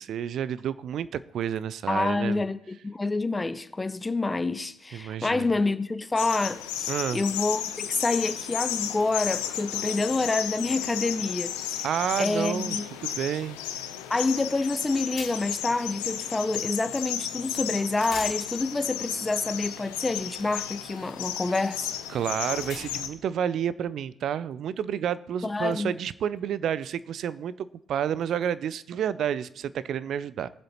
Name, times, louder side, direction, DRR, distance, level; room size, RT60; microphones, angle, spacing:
voice 1, 0.0-2.5 4.9-5.5 6.9-7.2 11.8-12.8 13.0-13.6 22.1-30.5, right 9 dB, 60° right, 0.4 m, -30 dB
voice 2, 1.9-11.8 12.2-12.8 14.1-21.9 25.4-25.9, left 3 dB, 20° left, 0.7 m, -28 dB
sound 1, 6.2-23.1, left 10 dB, 75° left, 0.6 m, -34 dB
sound 2, 15.2-15.7 17.5-17.6 17.9-23.2, left 5 dB, 60° left, 3.8 m, -45 dB
21.0 x 7.6 x 3.0 m
figure-of-eight pair, 40°, 0 cm